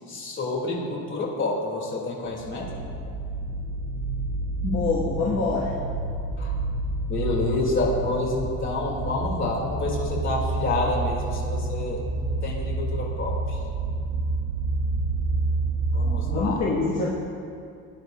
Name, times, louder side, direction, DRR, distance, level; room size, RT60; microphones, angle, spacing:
voice 1, 0.1-2.8 4.6-4.9 6.4-6.5 7.1-12.0 12.4-13.6 15.9-16.6, left 2 dB, 35° left, -3 dB, 2.7 m, -28 dB
sound 1, 2.3-16.4, right 3 dB, 50° right, 2.8 m, -29 dB
voice 2, 4.6-5.7 16.0-17.1, left 4 dB, 50° left, -6 dB, 1.6 m, -26 dB
19.5 x 10.5 x 2.5 m, 2.5 s
cardioid pair, 140°, 33 cm